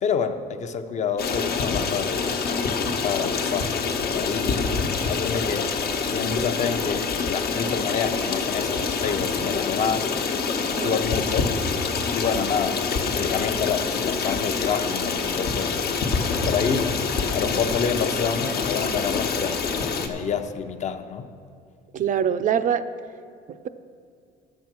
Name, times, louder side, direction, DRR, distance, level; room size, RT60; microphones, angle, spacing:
voice 1, 0.0-2.4 3.0-3.8 4.1-4.7 5.1-5.8 6.1-10.1 10.7-11.5 12.1-12.8 13.1-15.8 16.4-17.0 17.3-19.6 20.0-21.3, left 6 dB, 45° left, 8 dB, 0.7 m, -28 dB
Stream, 1.2-20.1, left 5 dB, 70° left, 1.1 m, -26 dB
voice 2, 10.6-11.0 21.9-22.8, right 8 dB, 50° right, 12 dB, 0.5 m, -24 dB
11.0 x 7.7 x 6.0 m, 2.3 s
cardioid pair, 110°, 17 cm